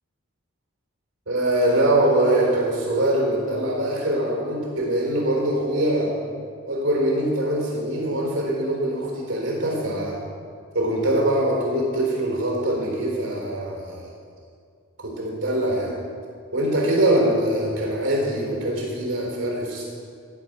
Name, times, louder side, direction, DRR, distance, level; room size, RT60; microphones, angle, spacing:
voice 1, 1.3-6.2 6.7-10.2 10.7-14.1 15.0-16.0 16.5-19.8, right 1 dB, 70° right, -1 dB, 4.0 m, -23 dB
15.0 x 6.0 x 8.1 m, 2.2 s
head